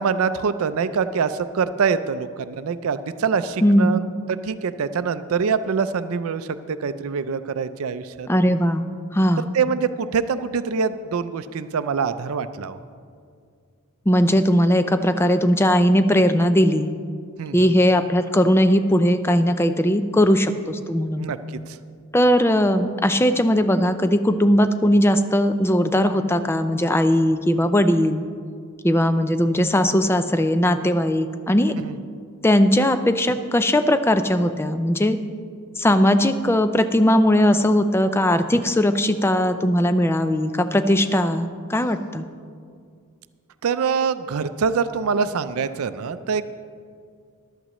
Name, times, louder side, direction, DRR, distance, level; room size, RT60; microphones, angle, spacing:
voice 1, 0.0-4.0 4.3-8.3 9.5-12.8 17.4-17.7 21.2-21.4 21.7-21.8 31.8-32.0 43.6-46.5, right 5 dB, 75° right, 12 dB, 0.4 m, -24 dB
voice 2, 3.6-4.0 8.3-8.8 9.1-9.5 14.1-16.9 17.5-21.3 22.1-28.2 28.8-31.7 32.4-35.2 35.8-42.3, equal, 10° left, 10 dB, 0.4 m, -19 dB
14.5 x 12.0 x 3.0 m, 2.2 s
head